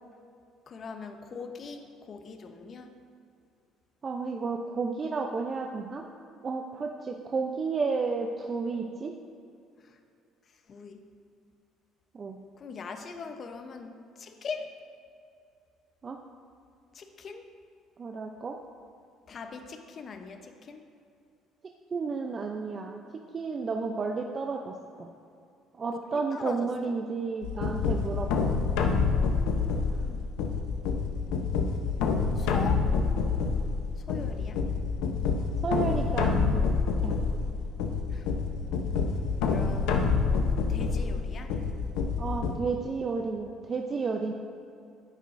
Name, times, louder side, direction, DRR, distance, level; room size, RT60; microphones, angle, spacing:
voice 1, 0.7-2.9 10.7-11.0 12.6-14.7 16.9-17.4 19.3-20.8 26.1-26.7 29.4-30.2 32.4-32.9 34.1-34.6 38.1-38.3 39.5-40.0 40.7-41.5, left 5 dB, 45° left, 6 dB, 0.8 m, -41 dB
voice 2, 4.0-6.0 6.3-9.1 12.1-12.4 16.0-16.2 18.0-18.6 21.9-23.0 23.3-25.1 25.7-28.7 32.9-33.0 35.6-36.6 37.0-37.2 42.2-44.3, right 4 dB, 40° right, 2 dB, 0.6 m, -32 dB
sound 1, 27.4-42.6, left 5 dB, 85° left, 0.7 m, -27 dB
10.5 x 8.1 x 2.6 m, 2.5 s
supercardioid pair, 85°, 0 cm